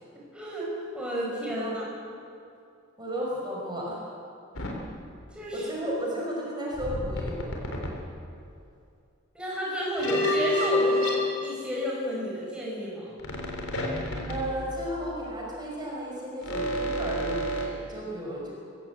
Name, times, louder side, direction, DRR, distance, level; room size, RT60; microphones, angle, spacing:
voice 1, 0.3-1.9 5.3-5.7 9.3-13.2, equal, 5° right, -5 dB, 5.2 m, -32 dB
voice 2, 3.0-4.0 5.5-7.6 14.3-18.5, equal, 20° right, -3 dB, 5.3 m, -34 dB
sound 1, 4.6-4.8 6.7-8.1 10.0-12.2 13.2-15.2 16.4-17.7, left 1 dB, 85° left, 3.8 m, -29 dB
23.5 x 16.5 x 8.3 m, 2.5 s
head